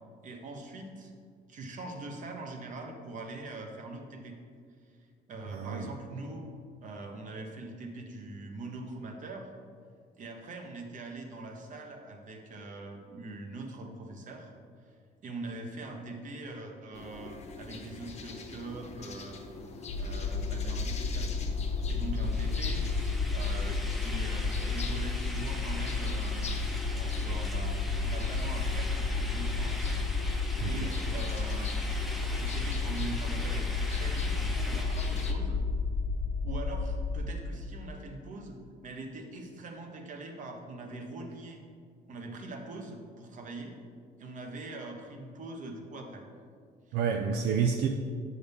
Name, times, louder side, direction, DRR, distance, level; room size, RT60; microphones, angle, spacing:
voice 1, 0.2-1.1 1.5-4.4 4.8-4.9 5.3-6.5 6.8-9.5 10.2-14.5 14.9-15.0 15.2-19.4 20.0-21.5 21.9-22.8 23.3-27.8 28.0-29.9 30.7-35.6 36.4-41.6 42.1-43.7 44.2-46.2 46.9-47.0, right 2 dB, 50° right, 3 dB, 1.1 m, -42 dB
voice 2, 5.5-5.9 30.6-30.9 46.9-47.9, right 6 dB, 75° right, 4 dB, 0.5 m, -29 dB
sound 1, 16.9-35.4, left 4 dB, 40° left, 0.9 m, -44 dB
sound 2, 19.9-37.2, left 4 dB, 85° left, 0.6 m, -31 dB
sound 3, 22.2-35.3, left 1 dB, ahead, 0.7 m, -43 dB
8.1 x 6.3 x 3.6 m, 2.1 s
cardioid pair, 110°, 17 cm